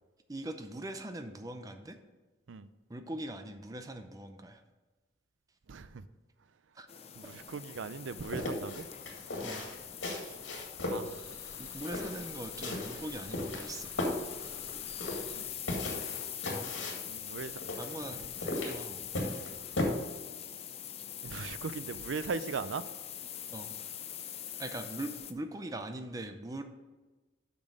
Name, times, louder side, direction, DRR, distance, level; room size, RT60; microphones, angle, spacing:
voice 1, 0.3-2.0 2.9-4.6 6.8-6.9 9.4-9.6 11.6-13.9 17.8-19.1 23.5-23.7 24.6-26.6, right 1 dB, 20° right, 7 dB, 0.5 m, -41 dB
voice 2, 5.7-6.0 7.2-8.9 10.1-10.4 10.9-11.2 15.3-15.5 17.0-17.6 21.2-22.8, right 5 dB, 90° right, 14 dB, 0.5 m, -39 dB
sound 1, 6.9-25.3, left 10 dB, 35° left, 0.5 m, -43 dB
sound 2, 8.2-19.8, left 1 dB, 85° left, 2.0 m, -37 dB
sound 3, 11.1-15.4, left 1 dB, 15° left, 2.2 m, -54 dB
7.3 x 6.0 x 5.1 m, 1.2 s
head